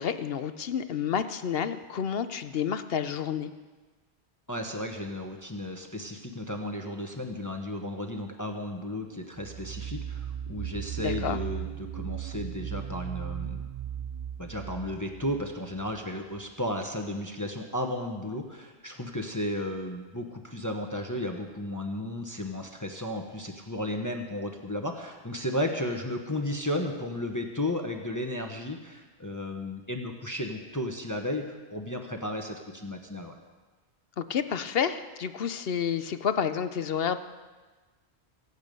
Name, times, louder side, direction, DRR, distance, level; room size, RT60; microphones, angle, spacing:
voice 1, 0.0-3.5 11.0-11.4 34.2-37.2, left 7 dB, 60° left, 11 dB, 0.9 m, -30 dB
voice 2, 4.5-13.7 14.4-33.3, left 1 dB, 15° left, 3 dB, 1.1 m, -34 dB
sound 1, 9.3-16.0, right 10 dB, 60° right, 0.4 m, -37 dB
24.5 x 8.3 x 5.3 m, 1.3 s
omnidirectional pair, 1.2 m